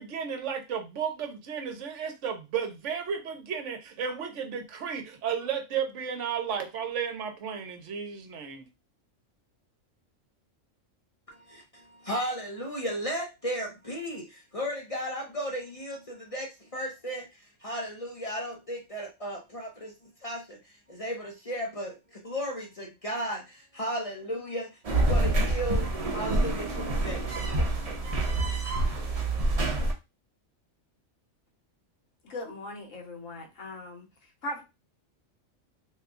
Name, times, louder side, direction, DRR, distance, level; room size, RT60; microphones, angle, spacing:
voice 1, 0.0-8.7, right 7 dB, 70° right, 6 dB, 1.0 m, -33 dB
voice 2, 11.3-19.9 20.2-27.2, equal, 40° left, 0 dB, 0.5 m, -35 dB
sound 1, 24.8-29.9, right 2 dB, 40° right, 0.5 m, -27 dB
voice 3, 32.2-34.0 34.4-34.6, left 1 dB, 75° left, 1 dB, 1.4 m, -39 dB
2.9 x 2.3 x 3.6 m, 0.25 s
omnidirectional pair, 1.3 m